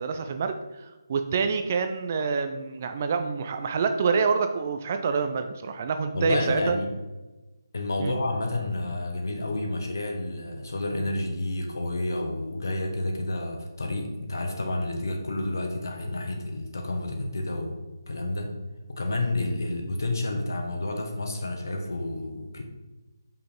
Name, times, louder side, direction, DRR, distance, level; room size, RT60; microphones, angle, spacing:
voice 1, 0.0-6.8 8.0-8.1, right 5 dB, 30° right, 7 dB, 0.4 m, -27 dB
voice 2, 6.1-6.9 7.7-17.7 18.1-18.5 18.9-22.6, left 2 dB, 55° left, 3 dB, 1.3 m, -30 dB
6.6 x 5.5 x 3.7 m, 1.1 s
figure-of-eight pair, 150°, 2 cm